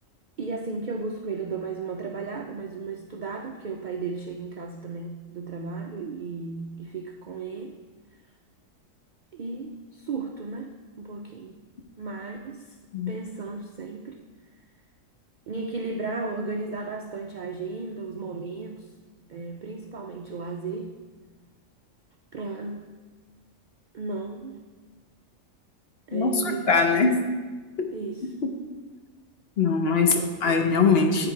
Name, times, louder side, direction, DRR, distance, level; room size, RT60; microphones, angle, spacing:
voice 1, 0.4-7.8 9.3-10.7 11.0-11.5 12.0-12.7 13.1-14.2 15.5-18.9 19.3-20.9 22.3-22.8 23.9-24.6 26.1-27.3 27.9-28.3 30.1-30.5, right 4 dB, 75° right, 3 dB, 0.4 m, -35 dB
voice 2, 26.1-27.2 27.8-27.9 28.4-28.5 29.6-31.3, left 4 dB, 55° left, 4 dB, 0.9 m, -22 dB
9.4 x 3.9 x 4.5 m, 1.3 s
omnidirectional pair, 1.4 m